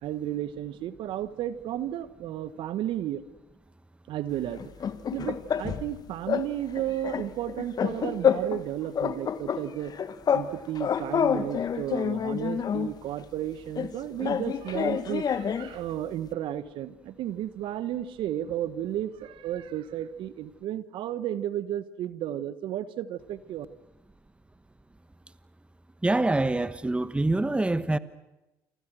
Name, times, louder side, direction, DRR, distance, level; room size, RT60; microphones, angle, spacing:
voice 1, 0.0-3.2 4.1-4.7 5.1-9.9 10.3-23.7, right 12 dB, 60° right, 14 dB, 1.3 m, -33 dB
sound 1, 4.6-5.9 6.3-6.5 6.8-8.7 8.9-10.5 10.8-12.9 13.8-15.7, left 7 dB, 45° left, 1.6 m, -28 dB
voice 2, 26.0-28.0, right 2 dB, 10° right, 14 dB, 1.2 m, -25 dB
29.5 x 25.0 x 6.3 m, 0.97 s
hypercardioid pair, 65°, 9 cm